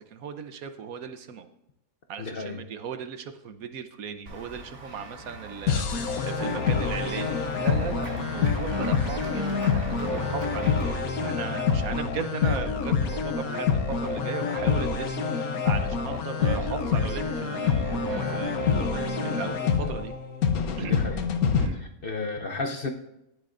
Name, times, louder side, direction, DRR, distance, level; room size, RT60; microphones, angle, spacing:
voice 1, 0.0-1.5 2.1-20.1 20.8-21.1 21.6-21.9, right 6 dB, 75° right, 9 dB, 1.3 m, -37 dB
voice 2, 2.2-2.6 19.8-19.9 20.8-21.2 22.0-22.9, left 3 dB, 45° left, 4 dB, 0.8 m, -32 dB
Run / Walk footsteps / Bell, 4.3-11.0, right 2 dB, 55° right, 1.8 m, -42 dB
sound 1, 5.7-21.7, left 6 dB, 80° left, 1.4 m, -27 dB
sound 2, 6.4-19.5, equal, 20° right, 1.1 m, -37 dB
19.0 x 7.6 x 2.5 m, 0.85 s
omnidirectional pair, 1.5 m